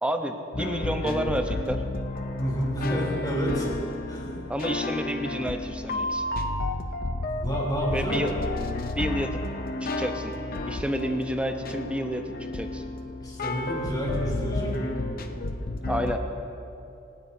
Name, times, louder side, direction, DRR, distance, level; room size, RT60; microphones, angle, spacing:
voice 1, 0.0-1.8 4.5-6.2 7.9-8.3 8.8-9.4 9.8-10.3 10.7-12.2 12.5-12.8 15.9-16.2, equal, 5° right, 5 dB, 0.9 m, -29 dB
sound 1, 0.5-16.2, left 2 dB, 50° left, 0.7 m, -31 dB
voice 2, 2.4-3.7 4.1-4.3 7.4-8.2 13.2-14.9, equal, 20° left, -4 dB, 3.8 m, -29 dB
27.0 x 12.5 x 2.8 m, 2.7 s
head